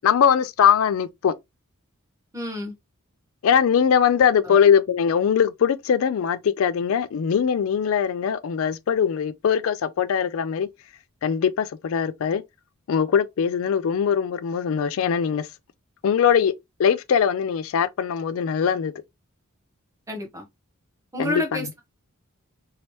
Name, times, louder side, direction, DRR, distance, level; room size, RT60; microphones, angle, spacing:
voice 1, 0.0-1.3 3.4-10.7 11.2-12.4 12.9-15.5 16.0-16.5 16.8-18.9 21.2-21.4, left 7 dB, 65° left, 0.4 m, -21 dB
voice 2, 2.3-2.7 4.4-4.6 20.1-20.5 21.1-21.8, left 1 dB, 15° right, 0.9 m, -30 dB
3.1 x 2.8 x 3.0 m
head